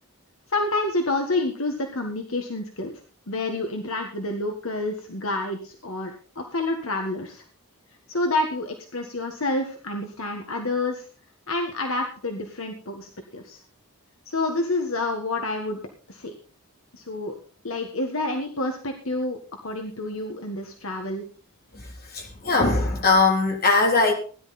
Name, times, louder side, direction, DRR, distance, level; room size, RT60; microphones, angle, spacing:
voice 1, 0.5-2.9 3.3-7.4 8.1-11.1 11.5-13.6 14.3-15.8 16.1-16.3 16.9-17.3 17.6-19.4 19.6-21.2, left 2 dB, 70° left, 3 dB, 1.7 m, -28 dB
voice 2, 21.7-24.1, left 3 dB, 45° left, 1 dB, 3.6 m, -21 dB
17.0 x 11.0 x 4.2 m, 0.40 s
head